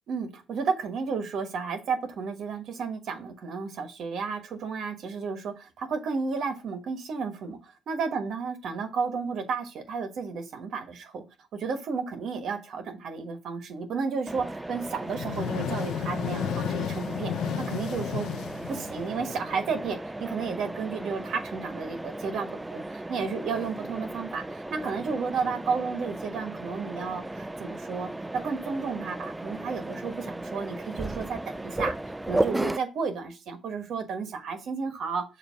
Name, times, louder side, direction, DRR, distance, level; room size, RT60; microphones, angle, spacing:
voice 1, 0.1-11.2 11.5-18.3 18.7-22.8 23.1-32.0 32.3-35.2, right 5 dB, 70° right, 6 dB, 1.3 m, -32 dB
Mechanisms, 14.3-32.8, right 1 dB, 10° right, 0.3 m, -35 dB
sound 1, 15.0-19.5, left 8 dB, 85° left, 0.5 m, -32 dB
6.7 x 2.6 x 5.6 m, 0.28 s
cardioid pair, 90°, 0 cm